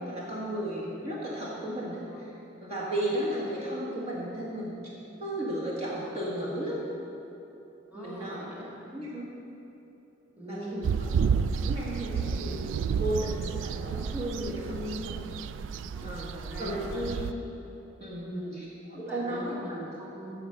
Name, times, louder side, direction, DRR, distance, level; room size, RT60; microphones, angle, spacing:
voice 1, 0.0-2.3 2.6-4.7 5.2-6.8 7.9-8.4 8.9-9.3 10.5-11.2 11.5-12.6 13.0-15.2 16.0-16.3 16.6-17.3 18.0-18.6 18.9-19.8, right 1 dB, 35° right, -7 dB, 1.6 m, -34 dB
voice 2, 7.9-9.1 10.4-10.9 15.9-17.0 18.2-18.6 19.0-20.3, equal, 10° right, -6 dB, 1.9 m, -41 dB
sound 1, 10.8-17.3, right 6 dB, 80° right, 0.3 m, -31 dB
13.5 x 4.9 x 6.7 m, 2.9 s
head